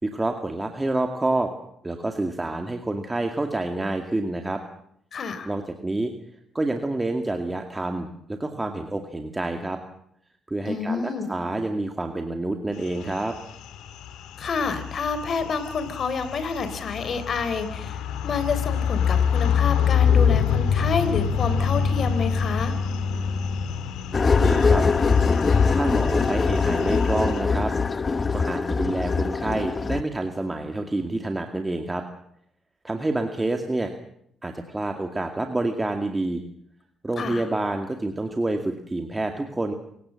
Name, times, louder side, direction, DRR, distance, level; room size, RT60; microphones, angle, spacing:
voice 1, 0.0-1.5 1.8-4.6 5.5-6.1 6.5-9.8 10.5-13.3 24.2-24.8 25.7-27.7 28.3-32.0 32.8-33.9 34.4-36.4 37.0-39.7, right 2 dB, 15° right, 5 dB, 2.2 m, -28 dB
voice 2, 5.1-5.5 10.7-11.3 14.4-22.8 37.2-37.4, left 5 dB, 50° left, 11 dB, 4.0 m, -28 dB
sound 1, 12.8-27.4, left 7 dB, 90° left, 2.2 m, -26 dB
sound 2, 24.1-30.0, left 4 dB, 35° left, 0.9 m, -22 dB
27.0 x 17.0 x 7.7 m, 0.72 s
cardioid pair, 90°, 0 cm